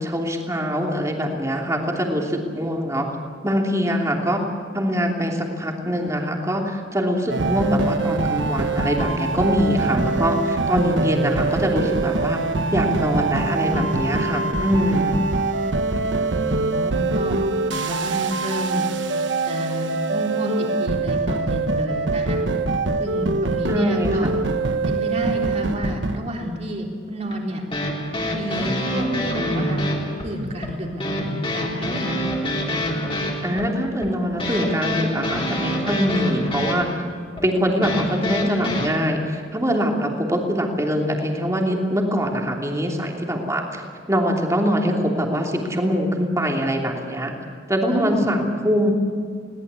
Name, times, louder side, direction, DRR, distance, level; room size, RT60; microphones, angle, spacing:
voice 1, 0.0-3.1 3.4-4.4 4.7-12.4 12.7-15.2 23.7-24.3 33.4-36.9 37.4-47.3 47.7-48.9, equal, 15° right, 0 dB, 3.0 m, -23 dB
sound 1, 7.3-26.2, right 3 dB, 75° right, 1.2 m, -24 dB
voice 2, 16.4-17.4 17.7-18.9 19.5-22.4 23.0-24.3 24.9-27.6 28.3-29.8 30.2-32.2 47.9-48.3, equal, 35° right, 0 dB, 3.8 m, -30 dB
sound 2, 27.3-38.9, equal, 30° left, 3.7 m, -26 dB
21.5 x 18.5 x 8.3 m, 2.2 s
head